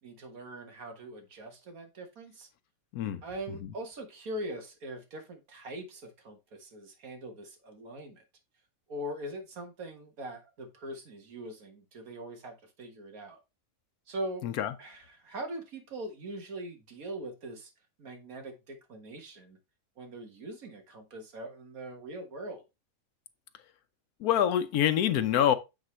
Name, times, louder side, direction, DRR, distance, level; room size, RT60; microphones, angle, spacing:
voice 1, 0.0-2.5 3.2-8.2 8.9-13.4 14.1-14.5 14.8-17.7 18.0-19.6 20.0-22.6, right 1 dB, 75° right, 1.9 m, -42 dB
voice 2, 24.2-25.6, left 10 dB, 85° left, 1.2 m, -25 dB
8.9 x 4.1 x 3.1 m
omnidirectional pair, 1.5 m